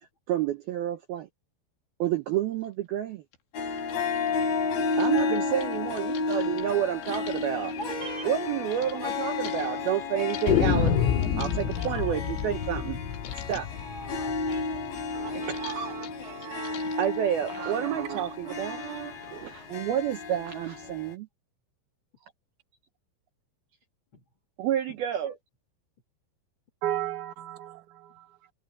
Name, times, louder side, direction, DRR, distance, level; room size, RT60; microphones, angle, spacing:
voice 1, 0.3-1.3 2.0-3.2 5.0-7.7 8.2-10.9 11.4-13.0 13.5-13.7 15.5-15.9 17.0-18.8 19.3-21.3 24.6-25.4, right 10 dB, 85° right, 2.1 m, -29 dB
sound 1, 2.6-2.7 3.3-3.4 3.7-8.9 9.4-12.9 13.1-13.8 14.2-17.2, left 10 dB, 65° left, 4.8 m, -47 dB
Harp, 3.5-21.1, left 4 dB, 50° left, 4.6 m, -32 dB
sound 2, 7.7-7.8 8.1-8.2 8.5-8.6 9.2-9.8 10.5-15.3, left 8 dB, 85° left, 4.8 m, -28 dB
voice 2, 7.7-8.3 8.6-9.0 10.5-10.8 11.1-12.2 13.8-15.6 15.9-16.4 16.8-17.0 24.1-24.2 24.9-25.0, equal, 35° left, 2.3 m, -43 dB
voice 3, 15.1-17.1 17.5-19.6 26.8-28.5, right 13 dB, 60° right, 2.3 m, -37 dB
omnidirectional pair, 5.9 m